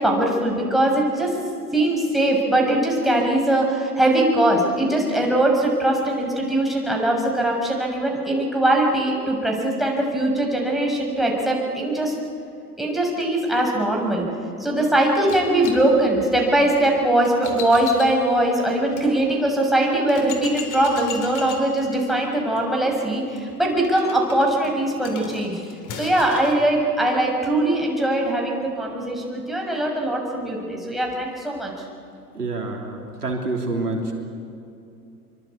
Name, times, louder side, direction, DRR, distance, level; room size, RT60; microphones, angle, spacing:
voice 1, 0.0-1.3 1.7-12.2 12.8-14.3 14.6-31.7, right 1 dB, ahead, -1 dB, 6.5 m, -21 dB
sound 1, 15.3-19.1 19.6-19.7 20.1-26.6, left 6 dB, 40° left, 4.4 m, -38 dB
voice 2, 32.4-34.1, right 2 dB, 85° right, 1 dB, 3.5 m, -27 dB
26.0 x 24.0 x 8.4 m, 2.6 s
figure-of-eight pair, 80°, 45 cm